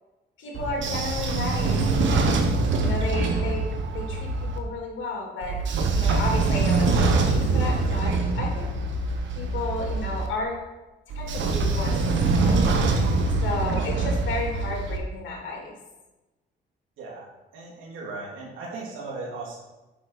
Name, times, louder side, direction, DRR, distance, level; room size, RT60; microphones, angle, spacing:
voice 1, 0.4-2.3 2.8-3.6 3.9-5.5 5.9-8.7 9.3-10.6 11.1-12.7 13.4-15.7, left 2 dB, 75° left, -1 dB, 3.1 m, -32 dB
Train / Sliding door, 0.5-4.6 5.4-10.3 11.1-15.0, right 3 dB, 70° right, 1.2 m, -24 dB
voice 2, 17.0-19.6, right 3 dB, 90° right, -3 dB, 2.8 m, -37 dB
8.7 x 6.0 x 4.7 m, 1.1 s
cardioid pair, 90°, 20 cm